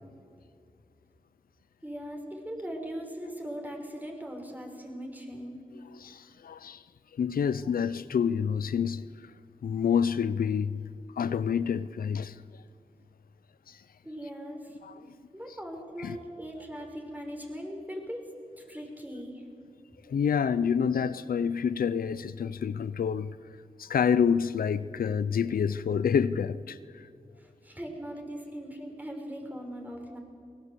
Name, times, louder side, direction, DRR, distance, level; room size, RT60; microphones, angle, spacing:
voice 1, 1.8-5.6 14.0-14.8 15.3-18.2 18.6-19.4 27.4-30.2, equal, 10° right, 5.6 m, -40 dB
voice 2, 5.9-6.8 7.1-9.1 9.6-12.4 13.7-13.8 14.8-15.1 16.0-16.2 20.1-23.4 23.8-27.1, left 7 dB, 90° left, 0.5 m, -28 dB
23.5 x 18.5 x 8.2 m
cardioid pair, 45°, 15 cm